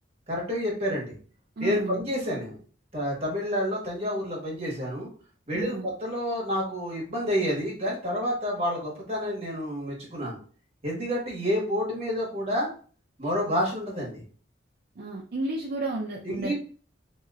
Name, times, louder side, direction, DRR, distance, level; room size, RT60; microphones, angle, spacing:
voice 1, 0.3-1.1 1.6-2.5 2.9-5.1 5.5-10.4 10.8-12.7 13.2-14.2 16.2-16.5, equal, 35° right, -3 dB, 1.2 m, -29 dB
voice 2, 1.6-2.0 5.5-5.9 15.0-16.5, right 2 dB, 55° right, -2 dB, 0.5 m, -32 dB
2.9 x 2.9 x 2.4 m, 0.41 s
head